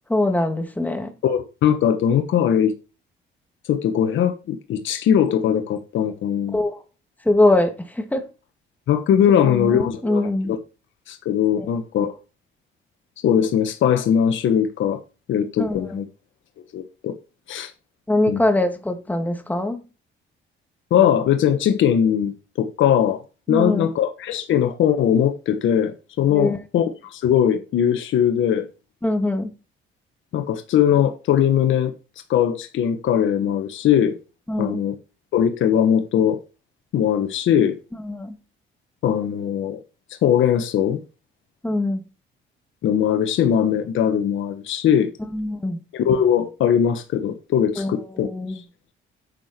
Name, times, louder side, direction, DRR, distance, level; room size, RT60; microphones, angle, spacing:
voice 1, 0.1-1.1 6.5-6.8 7.3-8.2 9.4-10.5 11.6-11.7 15.6-15.8 18.1-19.8 23.5-23.9 26.3-26.6 29.0-29.5 34.5-34.8 38.0-38.4 41.6-42.0 45.3-45.8 47.8-48.6, left 1 dB, 10° left, 2.2 m, -22 dB
voice 2, 1.2-2.7 3.7-6.6 8.9-10.6 11.1-12.1 13.2-15.0 15.3-16.1 16.7-17.2 17.5-17.7 18.3-18.4 20.9-23.2 23.5-28.7 30.3-31.9 32.3-34.2 34.6-34.9 35.3-36.4 36.9-37.8 39.0-39.8 40.2-41.0 42.8-45.1 45.9-48.3 48.5-48.6, left 9 dB, 75° left, 1.3 m, -20 dB
10.0 x 6.8 x 4.4 m
cardioid pair, 90°, 20 cm